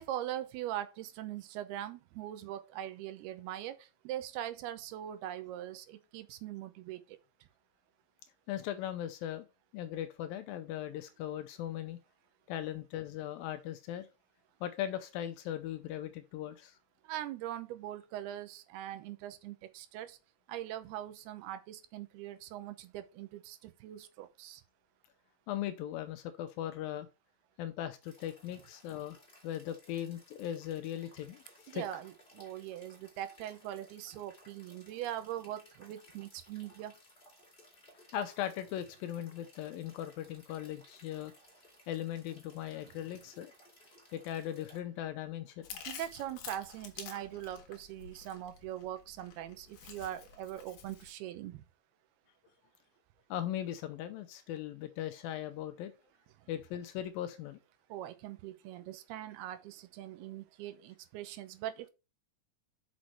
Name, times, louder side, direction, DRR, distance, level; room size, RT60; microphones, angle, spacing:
voice 1, 0.0-7.0 17.0-20.2 20.5-24.6 31.7-36.9 42.9-43.0 45.9-51.6 57.9-61.9, right 12 dB, 80° right, 2.8 m, -41 dB
voice 2, 8.5-9.5 9.7-12.0 12.5-14.1 14.6-16.8 25.5-27.1 27.6-29.2 29.4-31.8 38.1-41.3 41.9-43.5 44.1-45.7 53.3-55.9 56.5-57.6, left 11 dB, 80° left, 2.2 m, -39 dB
sound 1, 28.0-44.8, left 1 dB, 15° left, 1.9 m, -61 dB
Chewing mastication, 45.6-51.1, left 8 dB, 65° left, 2.4 m, -49 dB
6.3 x 6.2 x 4.3 m
omnidirectional pair, 4.5 m